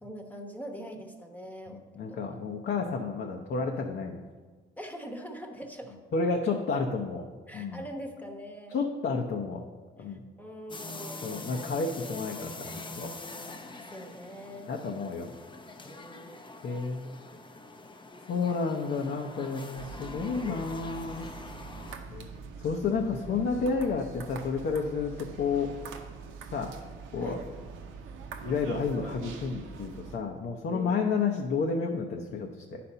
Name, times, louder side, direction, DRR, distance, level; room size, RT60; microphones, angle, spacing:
voice 1, 0.0-2.2 4.8-6.0 7.5-8.8 10.0-11.3 13.6-14.7 15.8-16.6 21.7-21.9 27.2-27.4 30.7-30.9, equal, 10° left, 4 dB, 1.0 m, -43 dB
voice 2, 1.7-4.2 6.1-7.8 8.7-9.6 10.0-10.2 11.2-13.1 14.7-15.3 16.6-17.2 18.3-21.3 22.1-22.3 22.6-25.9 26.5-26.7 27.1-27.4 28.4-32.8, left 4 dB, 60° left, 1 dB, 0.7 m, -31 dB
sound 1, 10.7-21.9, left 2 dB, 25° left, 0.6 m, -44 dB
sound 2, 19.7-30.2, right 5 dB, 90° right, 0.8 m, -44 dB
9.5 x 4.2 x 5.5 m, 1.4 s
cardioid pair, 90°, 20 cm